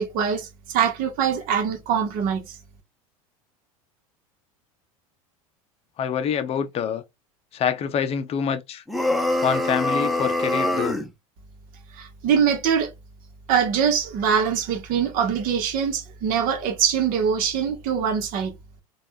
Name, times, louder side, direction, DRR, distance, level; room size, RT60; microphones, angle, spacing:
voice 1, 0.0-2.6 11.9-12.9 13.5-18.5, right 7 dB, 50° right, 1.1 m, -23 dB
voice 2, 6.0-7.0 7.5-8.8 9.4-11.0, left 7 dB, 35° left, 0.6 m, -26 dB
sound 1, 8.9-11.1, left 1 dB, ahead, 0.8 m, -24 dB
3.3 x 2.4 x 2.7 m
hypercardioid pair, 85°, 18 cm